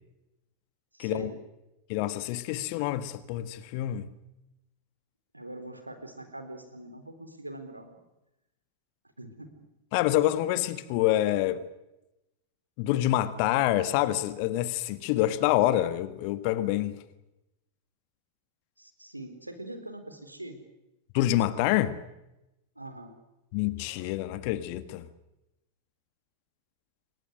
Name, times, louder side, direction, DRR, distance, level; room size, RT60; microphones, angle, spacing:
voice 1, 0.9-1.4 5.3-8.0 9.2-9.5 18.8-20.6 22.8-23.1, right 1 dB, 85° right, 4.1 m, -42 dB
voice 2, 1.9-4.1 9.9-11.6 12.8-17.0 21.1-22.0 23.5-25.1, left 14 dB, 45° left, 1.6 m, -27 dB
28.0 x 23.5 x 6.4 m
figure-of-eight pair, 90°, 0 cm